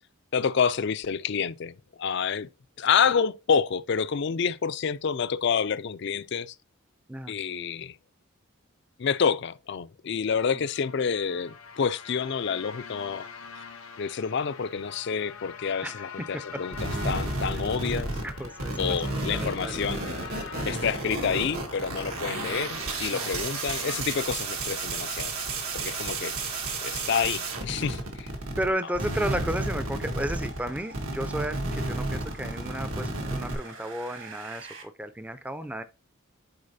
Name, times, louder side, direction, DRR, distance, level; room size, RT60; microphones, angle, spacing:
voice 1, 0.3-2.5 2.8-6.5 7.3-8.0 9.0-13.3 14.0-16.8 17.0-18.1 18.8-20.0 20.7-25.3 25.7-26.3 26.8-28.3, left 6 dB, 55° left, 0.4 m, -28 dB
sound 1, 10.5-24.0, left 5 dB, 85° left, 0.9 m, -44 dB
sound 2, 16.7-28.7 28.9-33.5, right 2 dB, 85° right, 1.8 m, -32 dB
voice 2, 18.2-19.8 23.1-23.3 28.6-35.8, right 1 dB, 5° right, 0.4 m, -33 dB
sound 3, 26.1-34.8, right 4 dB, 60° right, 1.6 m, -49 dB
9.6 x 4.1 x 2.7 m
head